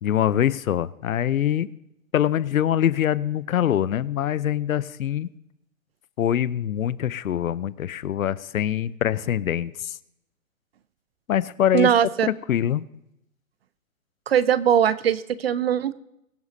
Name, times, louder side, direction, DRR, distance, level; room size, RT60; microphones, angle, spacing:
voice 1, 0.0-1.7 2.1-5.3 6.2-10.0 11.3-11.9 12.2-12.9, left 10 dB, 75° left, 18 dB, 0.7 m, -24 dB
voice 2, 11.7-12.3 14.3-15.9, right 9 dB, 45° right, 18 dB, 0.5 m, -20 dB
22.5 x 8.1 x 2.7 m, 0.85 s
hypercardioid pair, 160°, 42 cm